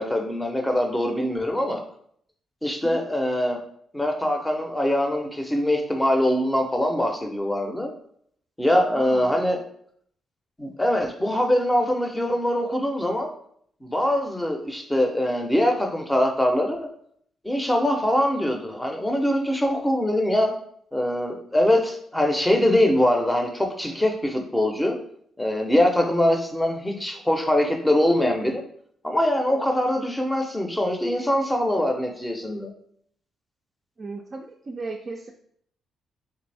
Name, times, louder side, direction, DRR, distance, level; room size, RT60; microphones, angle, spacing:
voice 1, 0.0-1.8 2.6-3.6 3.9-7.9 8.6-9.6 10.6-13.3 13.8-16.8 17.4-20.5 20.9-25.0 25.4-28.6 29.0-32.7, left 1 dB, 10° left, 3 dB, 0.6 m, -23 dB
voice 2, 8.9-9.4 34.0-35.3, right 3 dB, 35° right, 2 dB, 0.4 m, -36 dB
3.4 x 3.4 x 3.3 m, 0.65 s
cardioid pair, 110°, 0 cm